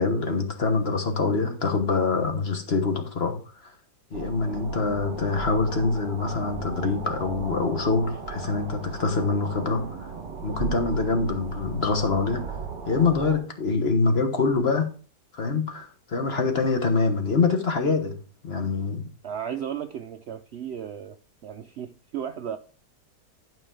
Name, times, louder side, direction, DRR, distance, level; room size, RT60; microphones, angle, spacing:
voice 1, 0.0-3.4 3.6-3.7 4.1-10.1 10.4-12.6 12.9-14.9 15.3-18.2 18.4-19.1, left 4 dB, 40° left, 1.4 m, -25 dB
sound 1, 4.1-13.4, right 5 dB, 45° right, 1.7 m, -36 dB
voice 2, 19.2-21.2 21.4-22.6, right 9 dB, 90° right, 0.5 m, -34 dB
12.0 x 5.6 x 3.8 m
omnidirectional pair, 1.8 m